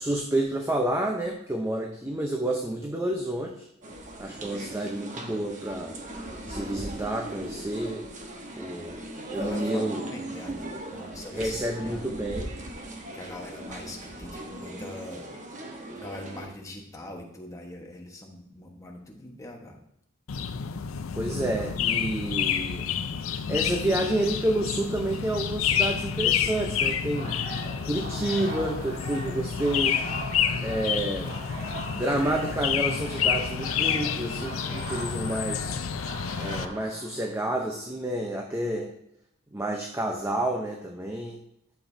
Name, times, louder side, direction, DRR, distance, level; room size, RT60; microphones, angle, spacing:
voice 1, 0.0-3.7 4.2-6.0 6.5-8.0 8.6-9.0 9.3-10.0 11.3-12.5 21.2-22.8 23.3-27.4 27.8-30.0 30.6-31.3 31.9-35.7 36.4-38.9 39.5-41.4, right 1 dB, 15° right, 1 dB, 0.7 m, -29 dB
sound 1, 3.8-16.5, right 1 dB, 40° right, 1.2 m, -39 dB
voice 2, 9.3-12.1 13.1-15.3 16.0-19.8, left 1 dB, 15° left, 0 dB, 1.3 m, -42 dB
sound 2, 20.3-36.7, left 7 dB, 75° left, 0.5 m, -29 dB
sound 3, 27.1-37.6, right 1 dB, 65° right, 2.4 m, -40 dB
11.5 x 7.0 x 2.7 m, 0.76 s
head